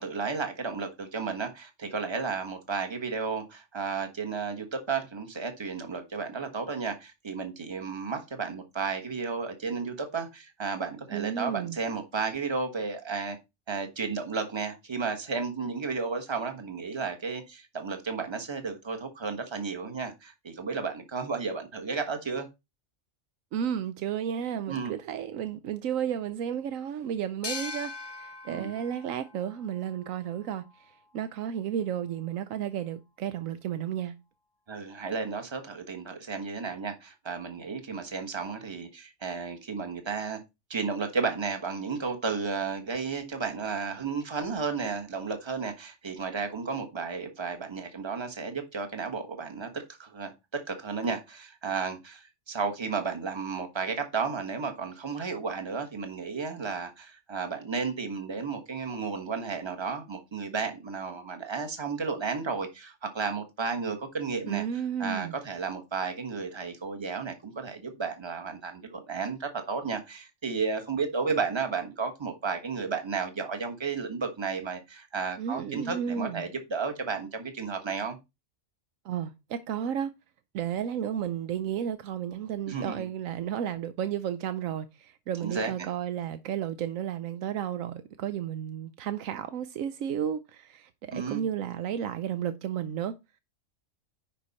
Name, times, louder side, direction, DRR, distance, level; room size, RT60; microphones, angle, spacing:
voice 1, 0.0-13.4 13.7-22.5 24.7-25.0 28.4-28.7 34.7-40.4 40.7-64.6 65.0-78.2 82.7-83.1 85.4-85.9 91.1-91.4, right 5 dB, 20° right, 1.3 m, -33 dB
voice 2, 11.1-11.8 23.5-34.1 64.5-65.3 75.4-76.5 79.0-80.1 80.5-93.1, right 9 dB, 85° right, 1.1 m, -33 dB
sound 1, 27.4-30.8, left 4 dB, 40° left, 0.3 m, -41 dB
10.0 x 5.0 x 4.1 m
omnidirectional pair, 1.3 m